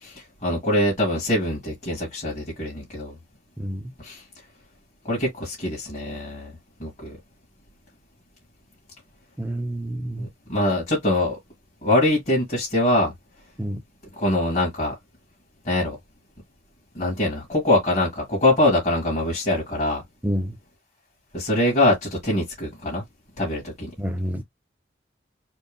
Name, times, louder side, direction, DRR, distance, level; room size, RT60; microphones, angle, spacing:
voice 1, 0.0-3.1 4.0-4.2 5.1-6.5 6.8-7.2 10.2-11.4 11.8-13.1 14.2-14.9 15.6-16.0 16.9-20.0 21.3-23.0 23.4-23.9, left 1 dB, 40° left, 1.9 m, -23 dB
voice 2, 3.6-3.9 9.4-10.3 13.6-13.8 20.2-20.6 24.0-24.4, equal, 10° right, 0.7 m, -28 dB
4.3 x 2.3 x 3.5 m
head